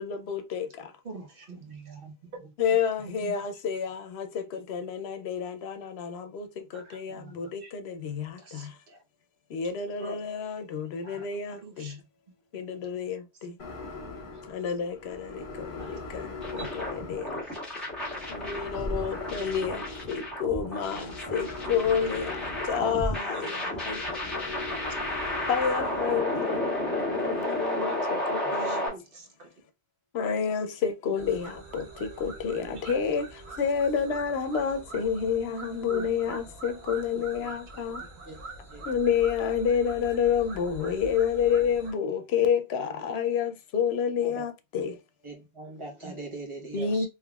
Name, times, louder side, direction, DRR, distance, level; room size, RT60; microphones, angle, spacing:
voice 1, 0.0-0.9 2.6-8.8 9.5-12.0 12.5-13.6 14.5-17.4 18.3-24.8 25.5-28.9 30.1-38.1 38.9-45.0 46.7-47.1, left 7 dB, 80° left, 0.8 m, -29 dB
voice 2, 1.0-2.5 3.1-3.3 6.7-7.7 8.4-9.0 11.0-11.2 11.6-12.1 12.7-12.8 15.3-16.0 16.9-17.2 20.9-21.2 22.1-22.2 24.4-24.8 27.8-29.5 35.9-36.1 37.1-37.2 38.0-38.1 46.0-46.1 46.7-46.9, right 3 dB, 65° right, 1.0 m, -46 dB
sound 1, 13.6-26.1, left 3 dB, 50° left, 1.2 m, -41 dB
sound 2, 16.4-28.9, left 1 dB, ahead, 1.6 m, -32 dB
sound 3, 31.2-41.9, right 2 dB, 85° right, 1.3 m, -44 dB
voice 3, 45.2-47.1, right 1 dB, 30° right, 1.1 m, -40 dB
3.7 x 3.0 x 2.3 m
omnidirectional pair, 1.0 m